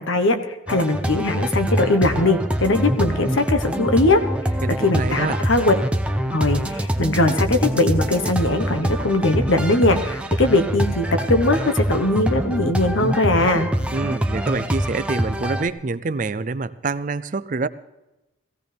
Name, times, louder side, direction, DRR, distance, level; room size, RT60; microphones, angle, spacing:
voice 1, 0.0-4.2 4.8-5.7 6.3-13.7, left 2 dB, 80° left, 7 dB, 1.3 m, -20 dB
sound 1, 0.7-15.7, equal, 5° right, 0.7 m, -24 dB
voice 2, 4.6-5.4 13.9-17.7, right 3 dB, 40° right, 15 dB, 0.4 m, -26 dB
18.0 x 15.5 x 3.5 m, 0.96 s
head